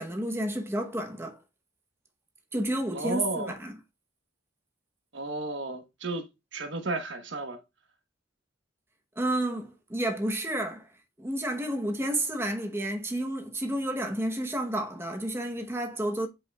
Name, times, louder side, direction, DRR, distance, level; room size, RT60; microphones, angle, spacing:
voice 1, 0.0-1.4 2.5-3.8 9.2-10.9 11.2-16.3, right 1 dB, 15° right, 0.9 m, -31 dB
voice 2, 2.9-3.5 5.1-7.6, right 2 dB, 75° right, 1.1 m, -33 dB
7.7 x 5.6 x 2.3 m
head